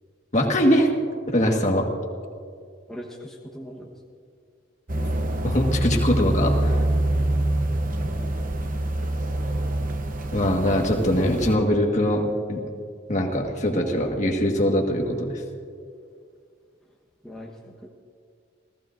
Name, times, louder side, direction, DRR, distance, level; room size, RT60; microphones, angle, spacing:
voice 1, 0.3-0.9 1.3-1.8 5.4-6.7 10.3-12.2 12.5-12.6 13.1-15.4, equal, 35° left, 1 dB, 1.5 m, -22 dB
voice 2, 2.9-3.9 17.2-17.9, equal, 5° left, -3 dB, 1.1 m, -40 dB
sound 1, 4.9-11.6, right 1 dB, 40° right, 0.8 m, -25 dB
29.5 x 15.0 x 2.5 m, 2.2 s
head